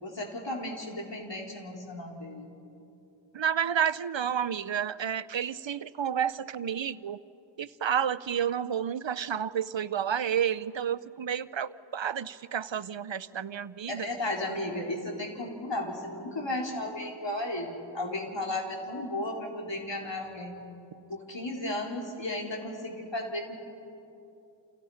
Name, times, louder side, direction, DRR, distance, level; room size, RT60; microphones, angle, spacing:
voice 1, 0.0-2.5 13.9-20.6 21.1-23.6, left 1 dB, 65° left, 0 dB, 4.4 m, -34 dB
voice 2, 3.3-7.2 7.6-14.1, right 8 dB, 75° right, 16 dB, 0.7 m, -30 dB
30.0 x 29.0 x 5.8 m, 2.7 s
wide cardioid pair, 60°, 46 cm